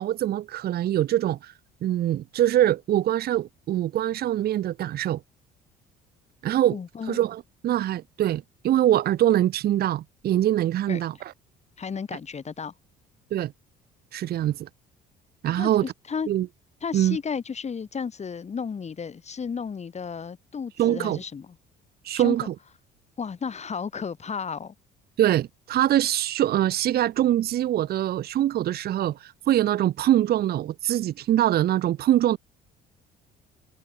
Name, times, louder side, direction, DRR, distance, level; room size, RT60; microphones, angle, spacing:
voice 1, 0.0-1.5 1.8-5.2 6.4-6.8 7.1-11.3 13.3-13.5 14.1-14.7 15.4-15.8 16.3-16.5 16.9-17.2 20.8-21.2 22.0-22.5 25.2-32.4, right 12 dB, 55° right, 0.8 m, -23 dB
voice 2, 6.7-7.2 10.9-11.0 11.8-12.7 15.6-16.3 16.8-21.6 22.1-22.5 23.2-24.7, left 6 dB, 35° left, 3.6 m, -33 dB
supercardioid pair, 80°, 19 cm